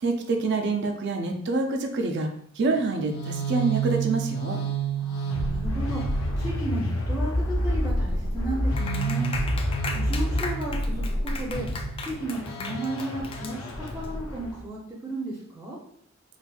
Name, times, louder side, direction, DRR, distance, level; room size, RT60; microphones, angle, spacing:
voice 1, 0.0-2.3 2.6-4.6, right 3 dB, 55° right, 4 dB, 0.4 m, -26 dB
sound 1, 2.7-14.6, right 1 dB, 75° left, 0.6 m, -28 dB
voice 2, 5.0-9.5 9.9-11.7 12.0-15.8, right 1 dB, 10° right, -4 dB, 0.6 m, -34 dB
Clapping, 8.8-14.1, left 4 dB, 25° left, 0.3 m, -37 dB
4.0 x 2.5 x 2.3 m, 0.67 s
head